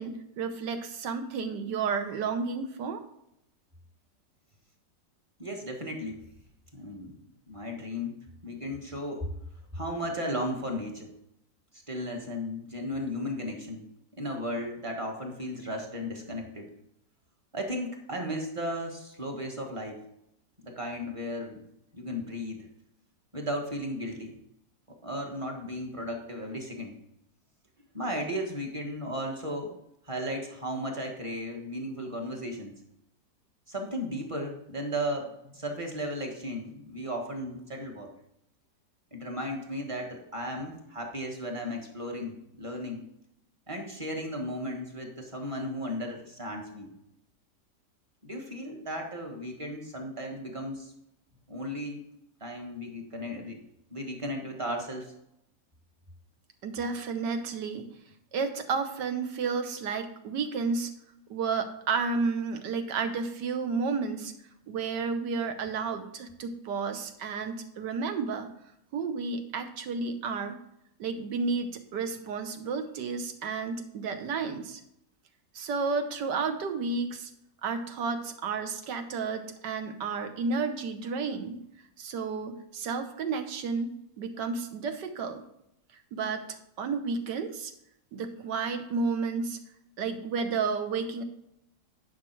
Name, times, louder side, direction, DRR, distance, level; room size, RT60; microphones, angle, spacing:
voice 1, 0.0-3.0 56.6-57.9 58.3-60.9 61.3-64.3 64.7-68.5 68.9-70.6 71.0-74.8 75.5-77.3 77.6-81.6 82.0-85.5 86.1-87.7 88.1-89.6 90.0-91.2, right 4 dB, 75° right, 7 dB, 1.6 m, -32 dB
voice 2, 5.4-6.3 6.7-7.2 7.5-9.3 9.7-11.1 11.9-13.9 14.2-16.7 17.5-20.1 20.6-21.6 21.9-22.7 23.3-24.4 24.9-27.0 27.9-29.7 30.0-32.7 33.7-38.1 39.1-43.0 43.7-46.9 48.2-50.9 51.5-52.1 52.4-53.6 53.9-55.1, equal, 20° right, 1 dB, 1.4 m, -35 dB
10.5 x 5.7 x 4.6 m, 0.79 s
omnidirectional pair, 1.9 m